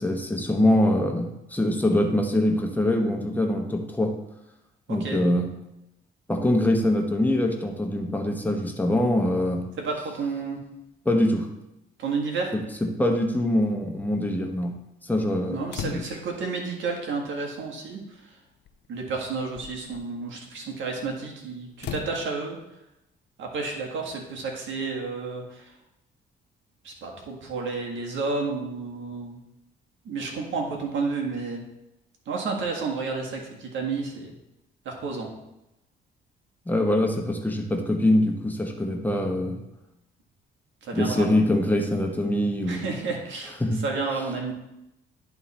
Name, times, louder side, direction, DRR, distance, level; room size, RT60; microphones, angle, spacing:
voice 1, 0.0-4.1 4.9-5.5 6.3-9.6 11.0-11.5 12.5-14.8 15.0-16.1 36.7-39.6 40.9-42.8 43.6-43.8, left 1 dB, 10° left, 3 dB, 1.2 m, -24 dB
voice 2, 4.9-5.2 9.8-10.6 12.0-12.5 15.5-18.4 18.9-22.6 23.4-25.7 26.8-29.4 30.0-31.6 32.2-34.4 34.8-35.3 40.8-41.2 42.6-43.5 43.8-44.5, right 4 dB, 75° right, 1 dB, 1.7 m, -31 dB
sound 1, 15.7-16.4 17.6-17.7 18.7-18.9 19.4-20.0 21.8-22.2, left 9 dB, 60° left, 0.6 m, -37 dB
10.5 x 3.7 x 4.2 m, 0.89 s
cardioid pair, 90°, 20 cm